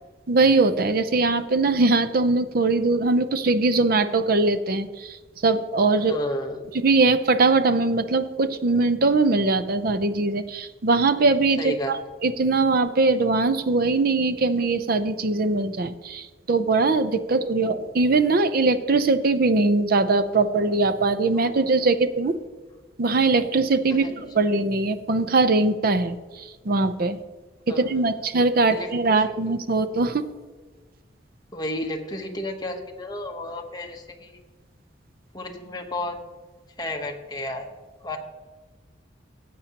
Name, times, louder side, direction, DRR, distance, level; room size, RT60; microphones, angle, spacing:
voice 1, 0.3-5.2 5.4-6.2 6.8-22.4 23.0-27.2 27.8-30.3, right 3 dB, 55° right, 11 dB, 0.6 m, -21 dB
voice 2, 6.1-6.6 11.6-12.0 17.3-17.4 23.9-24.1 27.7-28.1 28.7-29.2 29.5-29.6 31.5-34.4 35.3-36.2 36.8-37.7 38.0-38.2, left 1 dB, 25° left, 3 dB, 1.1 m, -32 dB
14.5 x 8.4 x 2.9 m, 1.3 s
head